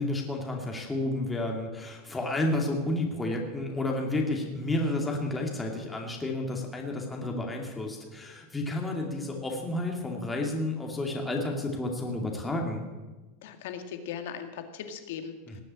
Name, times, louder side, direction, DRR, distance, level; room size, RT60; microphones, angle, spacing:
voice 1, 0.0-12.8 15.5-15.6, left 2 dB, 10° left, 0 dB, 2.5 m, -31 dB
voice 2, 13.4-15.6, left 8 dB, 80° left, 7 dB, 2.0 m, -39 dB
19.0 x 7.7 x 8.8 m, 1.2 s
supercardioid pair, 140°, 0 cm